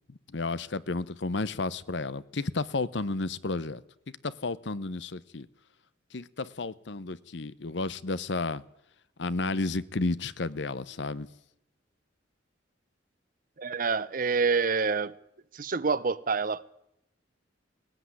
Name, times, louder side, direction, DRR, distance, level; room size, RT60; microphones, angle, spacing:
voice 1, 0.1-3.8 4.2-5.5 6.1-8.6 9.2-11.3, left 3 dB, 65° left, 0.8 m, -32 dB
voice 2, 13.6-15.1 15.5-16.6, right 4 dB, 45° right, 0.8 m, -27 dB
18.5 x 16.5 x 9.7 m
head